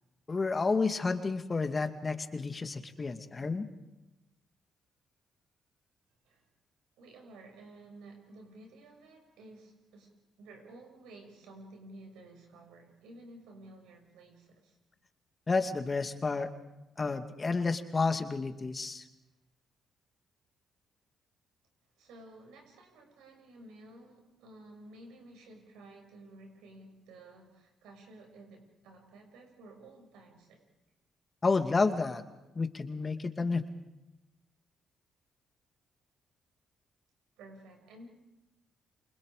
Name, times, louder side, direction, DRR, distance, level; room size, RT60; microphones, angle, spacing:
voice 1, 0.3-3.7 15.5-16.5 17.0-19.0 31.4-32.2 32.6-33.6, left 4 dB, 35° left, 7 dB, 2.3 m, -30 dB
voice 2, 7.0-10.1 10.4-14.8 22.0-30.6 37.4-38.1, right 2 dB, 85° right, 2 dB, 6.6 m, -53 dB
29.0 x 26.5 x 5.0 m, 0.99 s
supercardioid pair, 55°, 0 cm